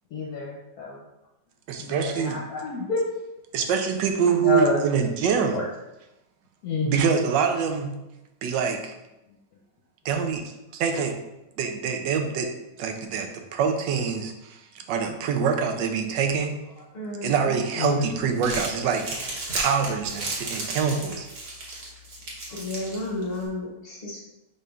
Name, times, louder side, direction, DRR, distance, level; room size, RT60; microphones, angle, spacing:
voice 1, 0.1-1.0 1.8-3.1 4.3-4.8 5.5-5.7 6.6-7.1 17.8-18.2, left 3 dB, 65° left, -3 dB, 1.1 m, -28 dB
voice 2, 1.7-2.4 3.5-5.6 6.8-8.0 8.4-8.9 10.0-10.4 10.8-11.1 11.6-12.5 12.8-16.6 17.2-21.3, right 6 dB, 90° right, 5 dB, 1.3 m, -25 dB
voice 3, 16.9-17.6 22.5-24.2, left 2 dB, 45° left, -2 dB, 0.8 m, -33 dB
Crumpling crinkling, 18.2-23.5, right 2 dB, 60° right, 1.6 m, -35 dB
5.1 x 4.3 x 2.4 m, 0.94 s
omnidirectional pair, 1.9 m